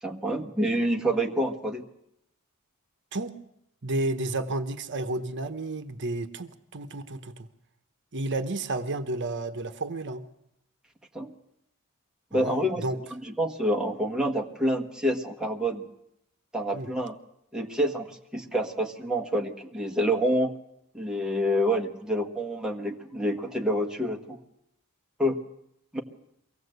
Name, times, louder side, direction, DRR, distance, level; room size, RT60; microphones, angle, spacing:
voice 1, 0.0-1.8 11.1-11.3 12.3-12.8 13.1-15.8 16.5-17.1 17.5-20.5 20.9-24.4 25.2-25.4 25.9-26.0, equal, 5° right, 2 dB, 1.5 m, -27 dB
voice 2, 3.8-7.5 8.1-10.2 12.3-13.0 16.7-16.9, right 2 dB, 55° right, 9 dB, 1.0 m, -31 dB
23.5 x 17.0 x 8.0 m, 0.78 s
head